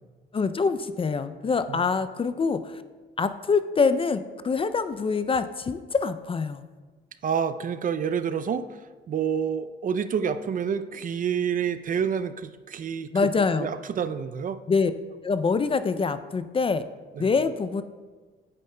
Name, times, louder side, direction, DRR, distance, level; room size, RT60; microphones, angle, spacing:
voice 1, 0.3-2.8 3.2-6.6 13.1-13.8 14.7-14.9 15.2-16.8 17.2-17.8, left 4 dB, 25° left, 12 dB, 0.4 m, -25 dB
voice 2, 7.2-14.6 17.2-17.3, right 7 dB, 45° right, 11 dB, 0.4 m, -28 dB
9.2 x 8.5 x 2.2 m, 1.4 s
cardioid pair, 90°, 20 cm